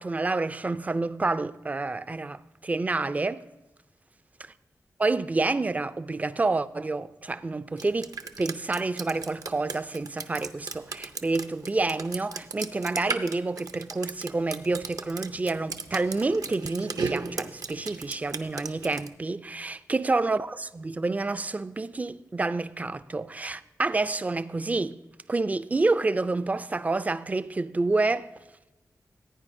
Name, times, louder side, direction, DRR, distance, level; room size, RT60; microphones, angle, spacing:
voice 1, 0.0-3.4 5.0-8.1 8.4-25.0 25.3-28.3, right 3 dB, 25° right, 0.3 m, -28 dB
Drip, 7.8-19.1, right 4 dB, 70° right, 0.6 m, -36 dB
15.5 x 9.3 x 2.6 m
wide cardioid pair, 125°, 6 cm